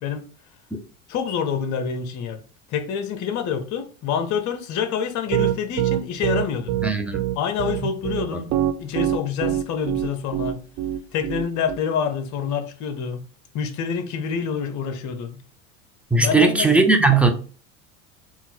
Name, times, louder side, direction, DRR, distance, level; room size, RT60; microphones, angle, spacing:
voice 1, 1.1-2.4 2.7-6.8 7.4-8.5 8.8-10.6 11.1-13.3 13.5-15.4 16.1-16.7, left 7 dB, 45° left, 0.8 m, -27 dB
Piano, 5.3-11.8, right 12 dB, 45° right, 0.6 m, -24 dB
voice 2, 6.8-7.2 8.3-8.4 16.1-17.3, right 3 dB, 5° right, 0.8 m, -17 dB
3.8 x 2.5 x 4.1 m
hypercardioid pair, 80°, 40 cm